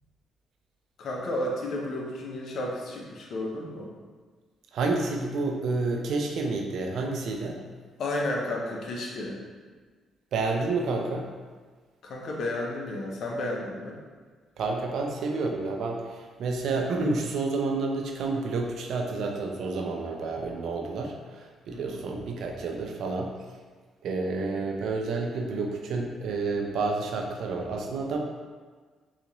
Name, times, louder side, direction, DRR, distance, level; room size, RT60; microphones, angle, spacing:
voice 1, 1.0-3.9 8.0-9.4 12.0-14.0 21.7-22.0, left 1 dB, 65° left, -1 dB, 0.7 m, -32 dB
voice 2, 4.7-7.6 10.3-11.3 14.6-23.3 24.0-28.2, right 3 dB, 70° right, 2 dB, 0.5 m, -29 dB
3.9 x 2.4 x 3.0 m, 1.5 s
cardioid pair, 90°, 0 cm